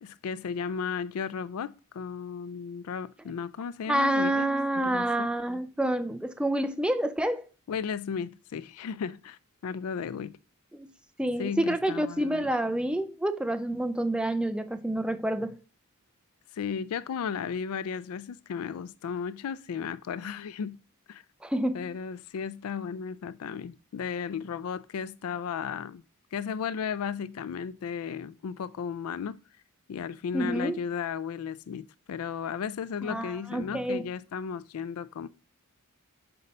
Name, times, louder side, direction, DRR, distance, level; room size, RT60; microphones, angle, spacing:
voice 1, 0.0-4.5 4.8-5.3 7.7-10.4 11.4-12.5 16.5-20.8 21.1-21.2 21.7-26.0 26.3-29.4 29.9-35.3, left 7 dB, 80° left, 0.4 m, -35 dB
voice 2, 3.9-7.4 10.7-10.9 11.2-15.6 21.4-21.9 30.3-30.8 33.0-34.0, right 1 dB, 5° right, 0.4 m, -28 dB
5.5 x 4.1 x 5.3 m
head